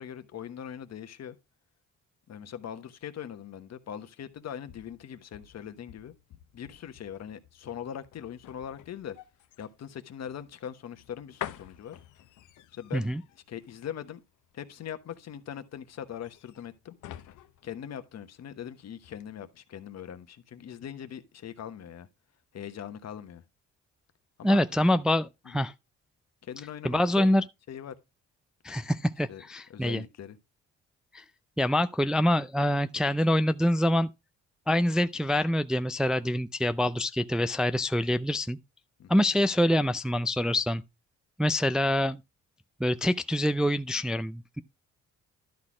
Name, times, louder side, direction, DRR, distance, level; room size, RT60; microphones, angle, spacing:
voice 1, 0.0-1.4 2.3-6.1 6.5-9.2 9.6-12.0 12.7-13.1 13.5-14.2 14.5-16.9 17.6-22.1 22.5-23.4 24.4-24.6 25.4-25.6 26.4-27.3 27.7-27.9 29.3-29.4 29.7-30.4 39.0-39.2, left 9 dB, 60° left, 1.2 m, -41 dB
sound 1, 4.3-18.7 19.0-19.2, left 12 dB, 80° left, 0.8 m, -48 dB
voice 2, 24.4-25.7 26.8-27.4 28.6-30.0 31.1-31.2 31.6-34.1 34.7-38.6 39.1-40.8 41.4-42.2 42.8-44.6, left 1 dB, ahead, 0.4 m, -25 dB
12.0 x 4.1 x 4.9 m
cardioid pair, 90°, 30 cm